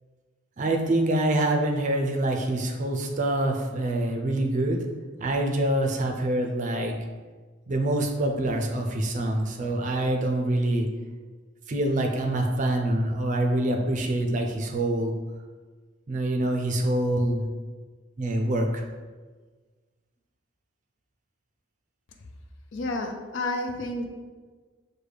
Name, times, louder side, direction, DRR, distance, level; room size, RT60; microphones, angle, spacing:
voice 1, 0.6-4.8 5.2-6.9 7.7-10.9 11.7-15.1 16.1-17.5 18.2-18.8, right 1 dB, 40° right, 3 dB, 0.4 m, -25 dB
voice 2, 22.7-24.1, left 2 dB, 65° left, 4 dB, 0.5 m, -30 dB
6.3 x 2.2 x 3.3 m, 1.4 s
head